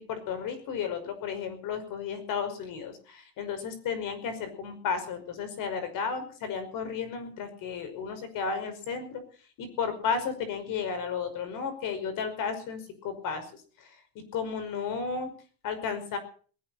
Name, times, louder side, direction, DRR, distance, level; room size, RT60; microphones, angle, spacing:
voice 1, 0.0-9.2 9.6-13.9 14.3-15.3 15.6-16.2, left 6 dB, 55° left, 10 dB, 5.4 m, -33 dB
19.5 x 17.0 x 4.3 m, 0.42 s
cardioid pair, 165°, 40 cm